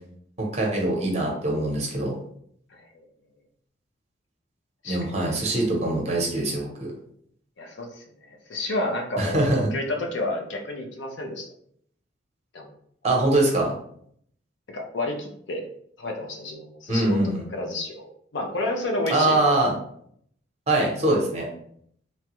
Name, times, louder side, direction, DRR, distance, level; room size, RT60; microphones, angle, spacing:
voice 1, 0.4-2.1 4.9-6.9 9.2-9.6 13.0-13.7 16.9-17.4 19.1-19.7 20.7-21.5, right 2 dB, 35° right, -2 dB, 0.8 m, -23 dB
voice 2, 2.7-3.1 4.8-5.1 7.6-9.5 9.7-11.5 12.5-12.7 14.7-15.7 16.0-17.2 17.5-19.6, left 2 dB, 70° left, 2 dB, 0.5 m, -30 dB
3.0 x 2.3 x 2.9 m, 0.67 s
head